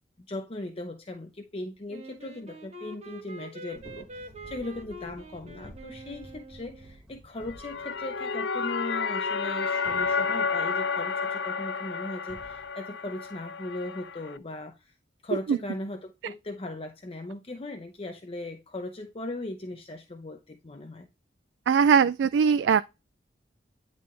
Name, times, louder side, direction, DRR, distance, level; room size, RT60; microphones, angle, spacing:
voice 1, 0.2-14.9 15.2-21.1, left 1 dB, 35° left, 0.7 m, -38 dB
Wind instrument woodwind instrument, 1.9-7.0, right 1 dB, 40° right, 1.3 m, -45 dB
sound 1, 3.7-8.4 9.9-10.7 12.3-12.7, right 1 dB, 5° right, 1.9 m, -51 dB
artificial synthetic sound, 7.4-14.4, left 5 dB, 70° left, 0.6 m, -31 dB
voice 2, 21.7-22.8, right 6 dB, 85° right, 0.3 m, -20 dB
10.0 x 4.1 x 3.2 m
head